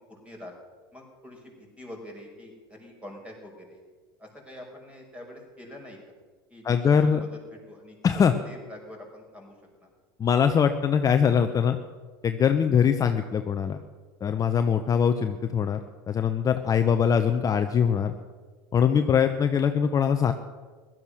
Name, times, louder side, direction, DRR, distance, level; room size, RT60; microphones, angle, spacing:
voice 1, 0.1-0.5 0.9-3.8 4.2-6.0 6.5-8.0 8.4-9.5 9.8-9.9 12.6-12.8 16.7-16.9, left 1 dB, 10° right, 1 dB, 5.4 m, -45 dB
voice 2, 6.6-7.2 8.0-8.3 10.2-11.8 12.2-13.8 14.2-15.8 16.1-18.1 18.7-20.3, left 7 dB, 30° left, 7 dB, 0.9 m, -22 dB
16.5 x 12.5 x 6.4 m, 1.4 s
hypercardioid pair, 90°, 12 cm